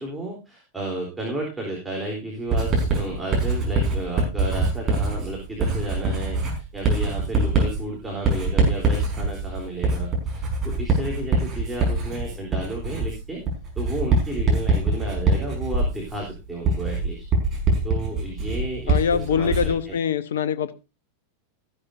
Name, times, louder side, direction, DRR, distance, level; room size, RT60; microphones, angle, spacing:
voice 1, 0.0-13.4 13.8-17.2 17.8-20.0, right 1 dB, 5° right, 3.7 m, -32 dB
Writing, 2.5-19.8, right 3 dB, 30° right, 5.5 m, -24 dB
voice 2, 18.9-20.7, left 7 dB, 60° left, 1.0 m, -23 dB
15.0 x 12.0 x 2.8 m
figure-of-eight pair, 90°, 0 cm